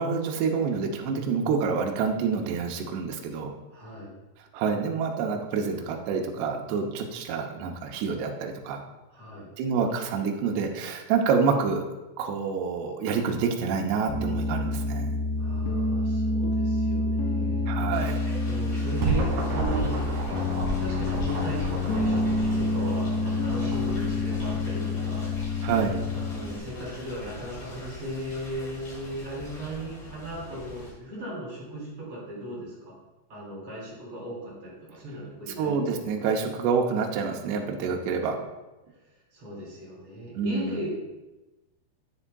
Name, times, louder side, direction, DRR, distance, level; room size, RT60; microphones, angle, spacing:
voice 1, 0.0-3.5 4.5-8.8 9.6-11.8 12.2-15.1 17.7-18.2 25.6-26.0 35.6-38.4 40.4-40.8, right 5 dB, 80° right, 1 dB, 2.5 m, -27 dB
voice 2, 3.7-4.1 9.1-9.5 15.4-17.7 18.4-20.0 20.8-25.2 26.1-32.9 33.3-35.8 39.3-40.9, right 1 dB, 30° right, -6 dB, 3.6 m, -37 dB
Piano, 14.1-26.6, left 2 dB, 80° left, 2.5 m, -28 dB
sound 1, 17.9-30.9, left 1 dB, 40° left, 3.7 m, -43 dB
sound 2, 18.9-28.0, right 3 dB, 55° right, 2.4 m, -34 dB
9.7 x 9.7 x 2.3 m, 1.1 s
omnidirectional pair, 5.5 m